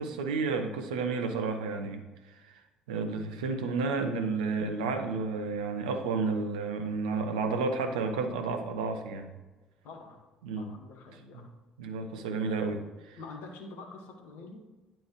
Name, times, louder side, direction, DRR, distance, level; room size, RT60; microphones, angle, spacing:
voice 1, 0.0-2.0 2.3-2.6 2.9-9.3 10.4-10.7 11.3-11.5 11.8-13.2, right 4 dB, 70° right, 7 dB, 0.6 m, -31 dB
voice 2, 9.8-10.2 10.6-11.5 13.2-14.6, left 3 dB, 60° left, 3 dB, 1.1 m, -46 dB
9.4 x 4.5 x 3.0 m, 1.2 s
figure-of-eight pair, 50°, 4 cm